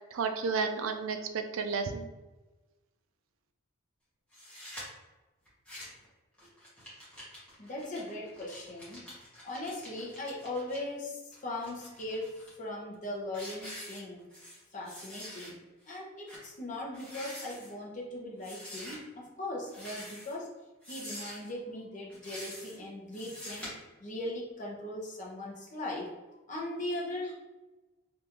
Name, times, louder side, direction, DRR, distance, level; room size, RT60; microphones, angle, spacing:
voice 1, 0.0-2.1, right 5 dB, 65° right, 6 dB, 0.4 m, -32 dB
sound 1, 4.3-4.8 5.5-6.1 6.4-10.8 11.3-12.5 12.9-13.1 13.3-14.6 14.8-15.5 15.9-16.0 16.3-16.4 16.9-17.7 18.4-19.0 19.7-20.4 20.8-21.5 22.1-22.8 23.1-23.7, left 1 dB, 5° left, 0.9 m, -46 dB
voice 2, 7.6-9.0 9.4-14.2 14.7-15.6 15.9-20.5 20.9-23.7 24.0-26.1 26.5-27.3, left 1 dB, 35° left, -3 dB, 0.7 m, -39 dB
3.4 x 2.5 x 2.9 m, 1.1 s
head